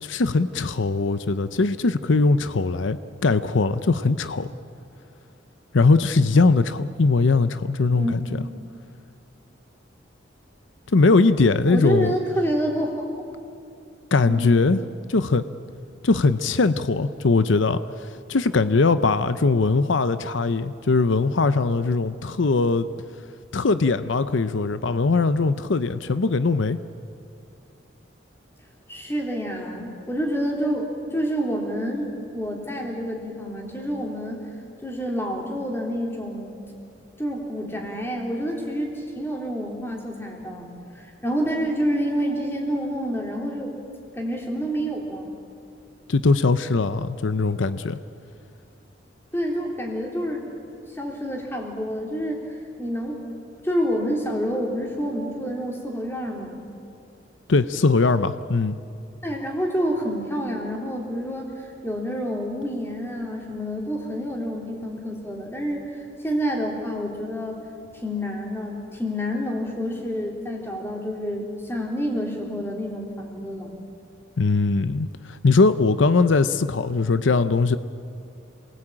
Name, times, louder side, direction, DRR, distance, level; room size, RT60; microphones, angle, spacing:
voice 1, 0.0-4.5 5.7-8.5 10.9-12.1 14.1-14.8 15.1-15.5 16.0-22.9 23.5-26.8 46.1-48.0 57.5-58.8 74.4-77.8, left 3 dB, 85° left, 0.7 m, -20 dB
voice 2, 7.9-8.5 11.7-13.1 14.2-14.6 28.9-34.4 34.8-36.6 37.2-43.7 44.1-45.4 49.3-50.5 50.9-52.4 52.8-53.2 53.6-56.6 59.2-67.6 67.9-73.7, equal, 10° left, 3.6 m, -28 dB
27.5 x 19.5 x 8.9 m
head